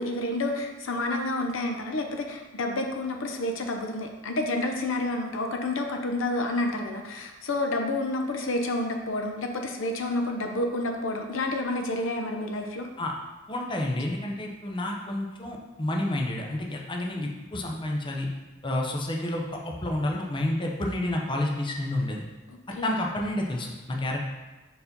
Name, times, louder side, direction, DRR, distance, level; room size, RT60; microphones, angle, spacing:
voice 1, 0.0-12.9 22.5-22.9, left 2 dB, 75° left, 3 dB, 0.7 m, -29 dB
voice 2, 13.5-18.3 18.6-22.3 22.8-24.3, left 1 dB, 25° left, 0 dB, 0.7 m, -30 dB
4.7 x 4.1 x 5.2 m, 1.2 s
head